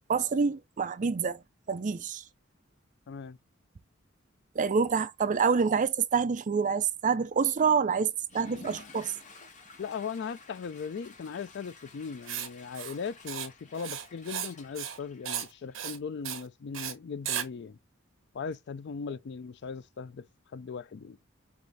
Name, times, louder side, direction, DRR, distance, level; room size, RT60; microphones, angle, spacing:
voice 1, 0.1-1.4 1.7-2.2 4.6-9.1, right 5 dB, 40° right, 0.4 m, -27 dB
voice 2, 3.1-3.4 9.8-17.8 18.3-20.3 20.5-21.2, left 5 dB, 55° left, 0.4 m, -38 dB
Water / Toilet flush, 8.2-16.0, left 2 dB, 40° left, 1.3 m, -51 dB
Writing, 12.3-12.5 12.7-13.0 13.3-13.5 13.7-14.5 14.8-15.0 15.2-15.5 15.7-16.0 16.2-16.4 16.7-16.9 17.3-17.5, right 9 dB, 80° right, 0.9 m, -35 dB
4.7 x 2.7 x 3.8 m
head